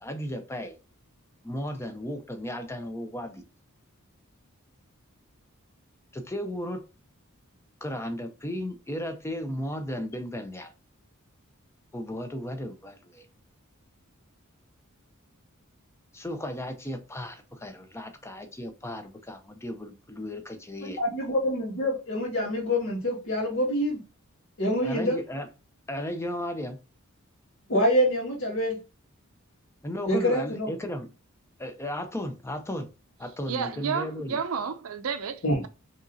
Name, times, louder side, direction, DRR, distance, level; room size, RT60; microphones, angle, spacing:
voice 1, 0.0-0.7 1.4-3.4 6.1-6.8 7.8-10.7 11.9-13.2 16.1-21.0 24.8-25.5 25.9-26.8 29.8-31.1 31.6-32.9 33.2-34.4, left 1 dB, 10° left, 0.6 m, -35 dB
voice 2, 20.8-24.0 24.6-25.2 27.7-28.8 30.1-30.7 35.4-35.6, equal, 65° left, 1.9 m, -26 dB
voice 3, 33.5-35.7, right 6 dB, 75° right, 0.5 m, -31 dB
4.9 x 3.0 x 2.7 m
head